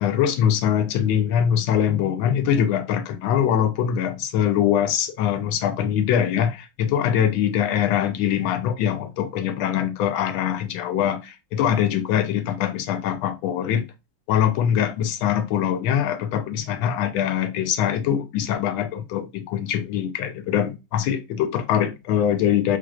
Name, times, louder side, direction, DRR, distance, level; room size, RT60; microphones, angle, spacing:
voice 1, 0.0-13.9 14.3-22.8, left 9 dB, 80° left, 1.4 m, -23 dB
3.5 x 3.2 x 2.3 m
omnidirectional pair, 2.2 m